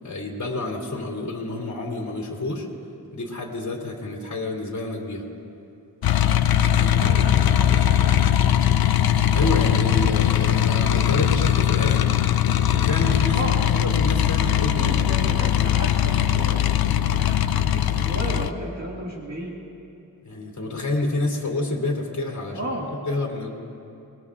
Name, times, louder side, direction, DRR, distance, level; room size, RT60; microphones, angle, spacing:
voice 1, 0.0-2.7 3.1-5.2 9.3-12.1 12.6-15.2 20.2-22.6 23.1-23.5, left 2 dB, 55° left, -2 dB, 2.7 m, -28 dB
sound 1, 6.0-18.5, left 10 dB, 80° left, 0.6 m, -20 dB
voice 2, 6.7-7.9 13.3-13.6 14.8-19.5 22.5-22.9, right 1 dB, 45° right, -3 dB, 2.0 m, -34 dB
25.0 x 21.0 x 2.5 m, 2.6 s
wide cardioid pair, 160°, 36 cm